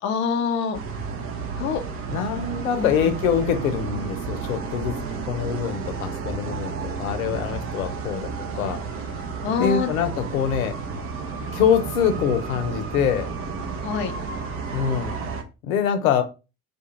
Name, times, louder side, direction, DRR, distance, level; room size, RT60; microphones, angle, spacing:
voice 1, 0.0-0.8 1.6-1.8 2.7-3.2 9.4-9.9 13.8-14.1, left 7 dB, 30° left, 7 dB, 0.4 m, -25 dB
sound 1, 0.7-15.4, right 5 dB, 30° right, 0.6 m, -32 dB
voice 2, 2.1-5.0 5.3-8.8 9.6-10.8 11.5-13.3 14.7-15.2 15.6-16.2, left 8 dB, 70° left, 8 dB, 0.6 m, -24 dB
2.4 x 2.3 x 2.9 m, 0.30 s
figure-of-eight pair, 65°, 44 cm